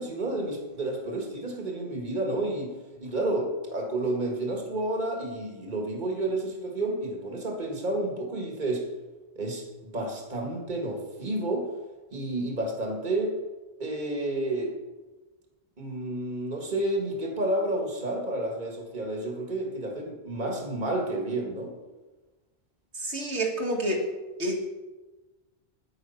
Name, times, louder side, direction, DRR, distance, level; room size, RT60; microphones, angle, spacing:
voice 1, 0.0-2.7 3.0-8.9 9.4-11.7 12.1-13.4 13.8-14.7 15.8-21.7, right 2 dB, 45° right, 1 dB, 2.0 m, -30 dB
voice 2, 22.9-24.1 24.4-24.6, right 1 dB, 90° right, 0 dB, 2.2 m, -28 dB
9.5 x 9.0 x 5.7 m, 1.2 s
omnidirectional pair, 1.1 m